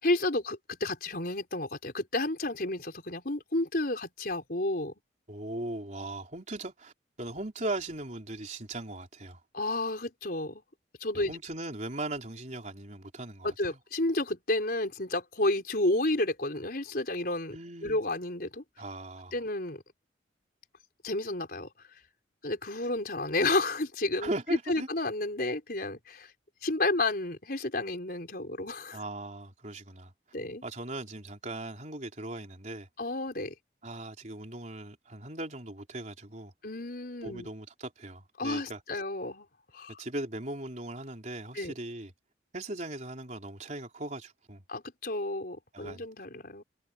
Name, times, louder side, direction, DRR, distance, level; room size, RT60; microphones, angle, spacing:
voice 1, 0.0-4.9 9.5-10.6 11.0-11.3 13.4-17.6 17.8-18.6 19.3-19.8 21.0-21.9 22.4-24.3 24.7-26.3 26.6-29.0 30.3-30.6 33.0-33.5 36.6-37.5 38.4-39.5 39.7-40.0 41.5-41.7 44.7-46.6, left 2 dB, 55° left, 5.0 m, -31 dB
voice 2, 5.3-9.4 11.2-13.8 17.5-18.0 18.8-19.4 24.2-24.9 28.9-30.1 30.6-32.9 33.8-36.5 37.2-38.8 40.0-42.1 42.5-44.6 45.7-46.0, right 2 dB, 40° right, 4.0 m, -38 dB
head